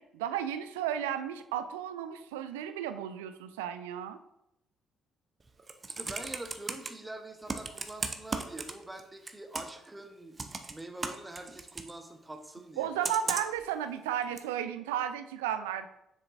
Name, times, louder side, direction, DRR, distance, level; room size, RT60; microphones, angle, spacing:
voice 1, 0.0-4.2 12.8-15.9, right 10 dB, 75° right, 11 dB, 0.4 m, -34 dB
Computer keyboard, 5.5-6.9 7.5-9.0 9.3-9.9 10.4-11.9 13.0-13.6 14.4-14.5, right 4 dB, 30° right, 0.7 m, -36 dB
voice 2, 5.9-10.4 10.7-12.9, right 2 dB, 15° right, 6 dB, 1.1 m, -44 dB
7.4 x 6.7 x 2.6 m, 0.84 s
figure-of-eight pair, 45°, 0 cm